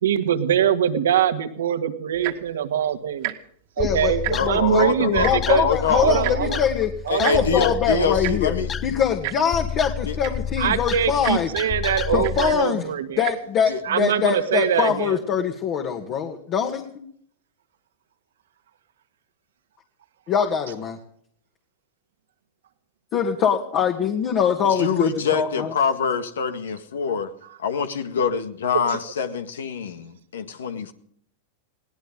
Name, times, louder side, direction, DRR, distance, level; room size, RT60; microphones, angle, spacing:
voice 1, 0.0-3.3 3.8-5.7 6.0-6.6 7.1-7.5 7.9-8.2 10.6-13.2 13.8-15.2 28.9-29.0, right 9 dB, 80° right, 8 dB, 1.9 m, -23 dB
Tick-tock, 2.1-2.5 3.2-3.3 3.7-3.8 4.1-4.6 5.2-5.3 6.2-6.4 7.2-7.4 8.2-8.3 9.2-9.4 9.9-10.0 10.2-10.5 11.2-11.4 12.2-12.3 13.1-13.3 14.0-14.1, right 19 dB, 60° right, 2.1 m, -29 dB
voice 2, 3.8-6.9 7.2-8.6 8.8-11.5 12.1-12.8 13.2-17.0 20.3-21.0 23.1-25.7, left 7 dB, 40° left, 3 dB, 2.3 m, -23 dB
sound 1, 3.8-12.5, left 7 dB, 25° left, 0.9 m, -30 dB
voice 3, 4.3-6.1 7.1-8.7 10.0-10.2 11.8-12.3 13.7-13.8 24.6-27.3 27.6-30.9, left 6 dB, 80° left, 8 dB, 1.8 m, -25 dB
22.0 x 17.5 x 3.8 m, 0.62 s
hypercardioid pair, 105°, 0 cm